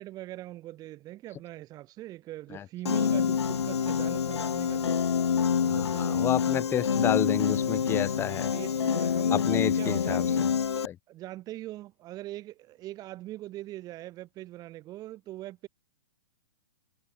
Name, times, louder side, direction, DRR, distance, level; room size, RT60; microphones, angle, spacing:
voice 1, 0.0-5.0 5.6-6.3 8.1-10.4 11.1-15.7, right 15 dB, 30° right, 3.0 m, -42 dB
Piano, 2.9-10.9, left 7 dB, 85° left, 2.3 m, -27 dB
voice 2, 5.7-8.5 9.3-10.3 10.8-11.0, left 10 dB, 15° left, 0.6 m, -30 dB
hypercardioid pair, 135°, 14 cm